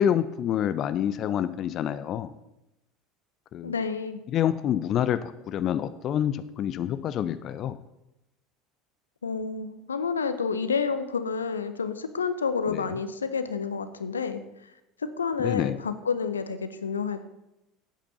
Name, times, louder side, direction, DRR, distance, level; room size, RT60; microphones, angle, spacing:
voice 1, 0.0-2.3 3.5-3.7 4.3-7.8 12.7-12.9 15.4-15.8, left 10 dB, 45° left, 14 dB, 0.5 m, -27 dB
voice 2, 3.6-4.2 9.2-14.4 15.0-17.2, left 5 dB, 85° left, 11 dB, 0.6 m, -29 dB
8.6 x 7.6 x 6.9 m, 0.91 s
figure-of-eight pair, 70°, 0 cm